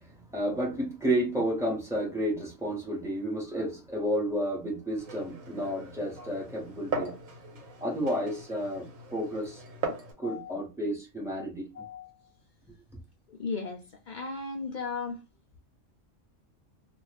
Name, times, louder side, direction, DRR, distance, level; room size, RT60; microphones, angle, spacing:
voice 1, 0.3-7.1 7.8-8.8 9.1-9.6 10.2-11.7, equal, ahead, 1.0 m, -31 dB
Glass, 5.0-10.1, right 3 dB, 80° right, 1.3 m, -39 dB
voice 2, 10.2-10.6 11.7-12.3 13.3-15.2, left 4 dB, 75° left, 0.4 m, -36 dB
2.5 x 2.4 x 3.3 m
omnidirectional pair, 1.3 m